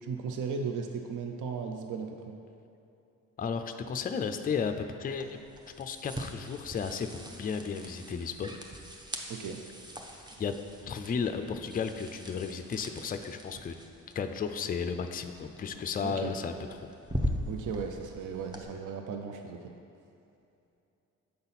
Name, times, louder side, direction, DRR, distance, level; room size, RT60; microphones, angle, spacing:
voice 1, 0.0-2.2 9.3-9.6 16.0-16.3 17.5-19.7, right 5 dB, 60° right, 4 dB, 0.6 m, -36 dB
voice 2, 3.4-5.4 5.8-8.5 10.4-10.5 10.8-13.8 14.1-16.9, left 6 dB, 25° left, 8 dB, 0.4 m, -34 dB
sound 1, 5.1-18.6, equal, 10° right, 0.7 m, -41 dB
6.7 x 4.0 x 4.0 m, 2.7 s
supercardioid pair, 55°, 35 cm